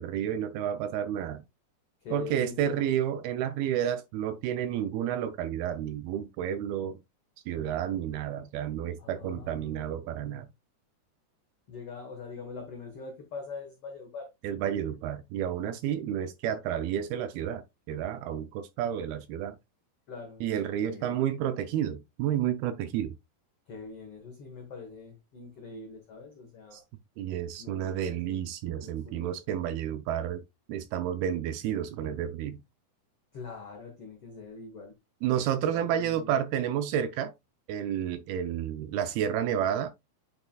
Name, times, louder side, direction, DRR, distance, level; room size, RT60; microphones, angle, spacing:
voice 1, 0.0-1.4 2.1-7.0 7.5-10.5 14.4-19.6 20.4-23.1 26.7-26.8 27.2-30.4 30.7-32.6 35.2-37.3 37.7-39.9, right 10 dB, 80° right, 2.3 m, -31 dB
voice 2, 2.0-3.0 9.0-10.1 11.7-14.3 20.1-20.4 20.8-21.2 23.7-26.8 27.6-28.5 28.8-29.4 33.3-34.9 35.7-36.3, left 4 dB, 75° left, 1.3 m, -43 dB
8.8 x 5.8 x 2.3 m
omnidirectional pair, 4.8 m